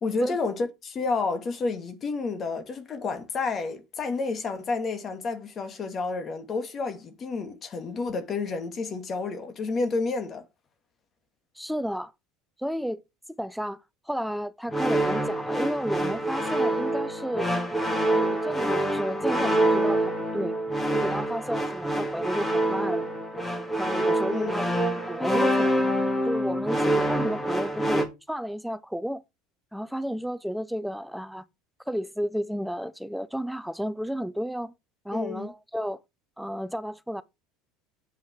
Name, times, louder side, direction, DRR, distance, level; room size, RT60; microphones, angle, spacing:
voice 1, 0.0-10.4 24.3-24.7 35.1-35.5, left 4 dB, 35° left, 1.8 m, -30 dB
voice 2, 11.6-12.1 12.6-13.0 13.4-13.8 14.1-17.5 18.1-20.5 20.9-23.1 23.7-24.6 25.1-25.7 26.3-29.2 29.7-31.4 31.9-34.7 35.0-36.0 36.4-37.2, equal, ahead, 0.6 m, -32 dB
sound 1, 14.7-28.1, right 1 dB, 20° left, 2.6 m, -26 dB
8.1 x 5.5 x 4.5 m
hypercardioid pair, 75°, 0 cm